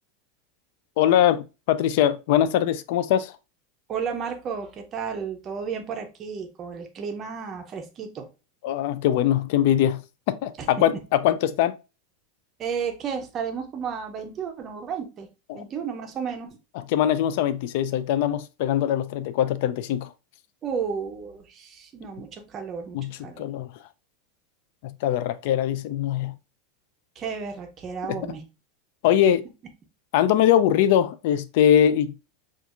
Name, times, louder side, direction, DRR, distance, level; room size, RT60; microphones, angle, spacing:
voice 1, 1.0-3.3 8.6-10.0 10.3-11.7 15.5-15.6 16.8-20.1 22.9-23.7 24.8-26.3 28.1-28.2 29.0-29.4 30.1-32.1, left 10 dB, 55° left, 0.3 m, -22 dB
voice 2, 3.9-8.3 10.6-10.9 12.6-15.3 15.5-16.6 20.6-23.5 27.2-28.4, right 6 dB, 25° right, 0.5 m, -33 dB
4.4 x 2.4 x 2.4 m
supercardioid pair, 170°, 0 cm